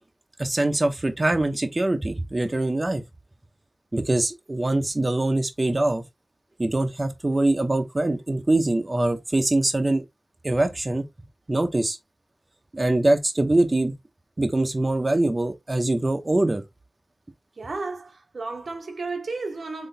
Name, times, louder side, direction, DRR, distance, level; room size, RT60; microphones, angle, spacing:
voice 1, 0.4-3.0 3.9-6.0 6.6-10.0 10.4-11.0 11.5-12.0 12.7-13.9 14.4-16.6, right 2 dB, 35° right, 0.7 m, -23 dB
voice 2, 17.6-19.9, right 3 dB, 75° right, 0.9 m, -33 dB
4.0 x 3.0 x 2.7 m
cardioid pair, 50°, 0 cm